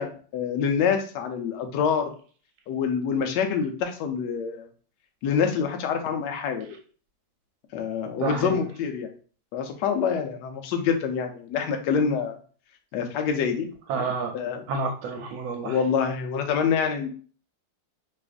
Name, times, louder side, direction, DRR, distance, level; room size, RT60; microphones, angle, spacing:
voice 1, 0.0-2.1 2.7-4.7 5.2-6.7 7.7-9.1 9.5-12.3 12.9-13.7 14.3-14.6 15.6-17.1, left 6 dB, 70° left, 5 dB, 1.1 m, -26 dB
voice 2, 8.2-8.6 13.9-14.4 14.7-15.8, right 4 dB, 85° right, 3 dB, 1.4 m, -29 dB
4.9 x 2.4 x 2.5 m, 0.41 s
omnidirectional pair, 2.1 m